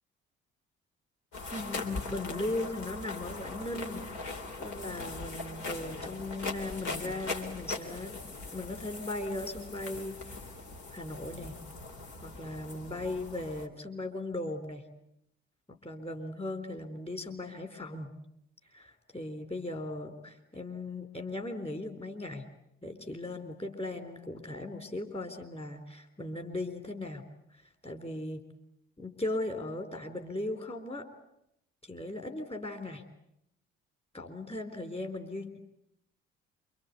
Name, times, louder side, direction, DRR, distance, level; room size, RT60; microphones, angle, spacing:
sound 1, 1.3-13.7, left 3 dB, 60° left, 3.7 m, -40 dB
voice 1, 1.5-4.3 4.6-8.2 8.5-10.4 10.9-11.6 12.2-14.8 15.7-18.1 18.7-22.4 22.8-27.2 27.5-28.4 29.0-31.1 31.8-33.0 34.1-35.6, left 2 dB, 20° left, 6 dB, 3.8 m, -38 dB
28.0 x 25.0 x 8.3 m, 0.79 s
figure-of-eight pair, 50°, 32 cm